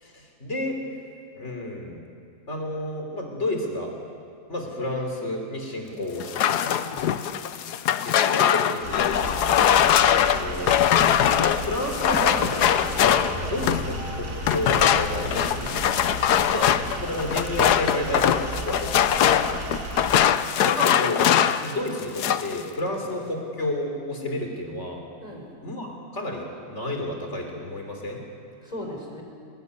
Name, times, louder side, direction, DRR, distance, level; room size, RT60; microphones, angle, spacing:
voice 1, 0.0-0.8 1.4-2.0 2.5-3.9 4.5-6.4 8.0-9.2 10.2-10.8 11.4-15.6 16.4-16.7 17.0-19.1 20.7-21.3 21.6-25.0 25.6-25.9 26.1-28.2, left 1 dB, 40° left, 2 dB, 3.8 m, -31 dB
sound 1, 6.2-13.9 14.4-21.7 22.0-22.6, left 10 dB, 75° left, 1.3 m, -21 dB
sound 2, 8.8-20.2, right 2 dB, 65° right, 3.2 m, -35 dB
sound 3, 13.2-17.4, left 2 dB, 50° right, 4.8 m, -38 dB
voice 2, 15.4-15.9 19.4-19.7 22.8-23.0 25.2-25.6 28.6-29.2, equal, 20° left, 1 dB, 4.3 m, -39 dB
22.0 x 19.0 x 9.7 m, 2.4 s
omnidirectional pair, 1.8 m